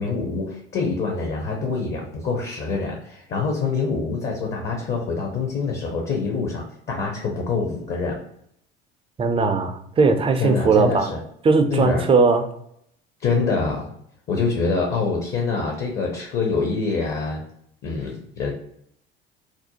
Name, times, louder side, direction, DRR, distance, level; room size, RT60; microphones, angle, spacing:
voice 1, 0.0-8.2 10.4-11.2 11.7-12.0 13.2-13.9 14.3-17.4 17.8-18.5, left 4 dB, 35° left, 1 dB, 0.6 m, -25 dB
voice 2, 9.2-11.1 11.4-12.4, right 4 dB, 20° right, 6 dB, 0.3 m, -18 dB
2.5 x 2.0 x 2.8 m, 0.71 s
hypercardioid pair, 65°, 30 cm